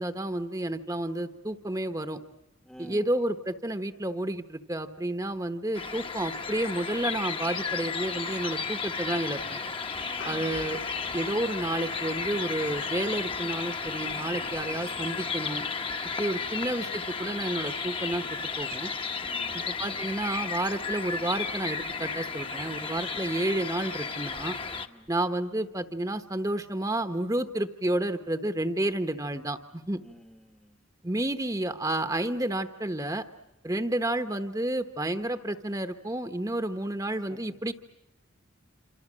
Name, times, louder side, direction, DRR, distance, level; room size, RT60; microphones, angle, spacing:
voice 1, 0.0-2.2 2.8-9.6 10.2-10.8 11.1-15.6 16.2-18.2 18.6-18.9 19.7-24.5 25.1-30.0 31.0-33.2 33.6-37.7, right 1 dB, 15° right, 8 dB, 1.1 m, -30 dB
voice 2, 2.6-3.1 10.0-10.5 19.3-19.7 24.9-25.1 30.0-30.8 37.3-37.4, equal, 5° left, 8 dB, 1.1 m, -51 dB
sound 1, 5.7-24.9, left 5 dB, 25° left, 1.1 m, -33 dB
sound 2, 10.2-12.7, left 2 dB, 65° left, 2.1 m, -45 dB
27.5 x 27.0 x 7.5 m, 0.91 s
head